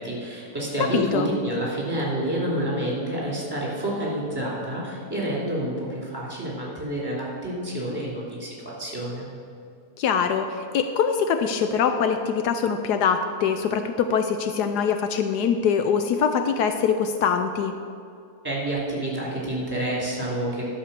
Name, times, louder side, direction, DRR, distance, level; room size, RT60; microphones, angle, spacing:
voice 1, 0.0-9.3 18.4-20.6, right 1 dB, 15° right, -5 dB, 2.9 m, -28 dB
voice 2, 0.9-1.3 10.0-17.7, left 7 dB, 75° left, 7 dB, 1.1 m, -23 dB
11.5 x 5.8 x 6.7 m, 2.4 s
omnidirectional pair, 1.8 m